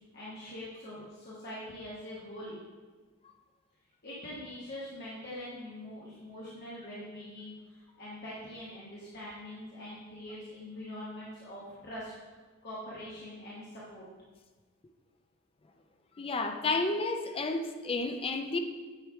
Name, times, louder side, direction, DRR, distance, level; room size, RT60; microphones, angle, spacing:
voice 1, 0.1-2.6 4.0-12.1 12.6-14.1, left 1 dB, 50° left, -8 dB, 1.3 m, -43 dB
voice 2, 16.2-18.6, left 3 dB, 25° left, 6 dB, 0.5 m, -31 dB
8.8 x 3.3 x 4.5 m, 1.3 s
head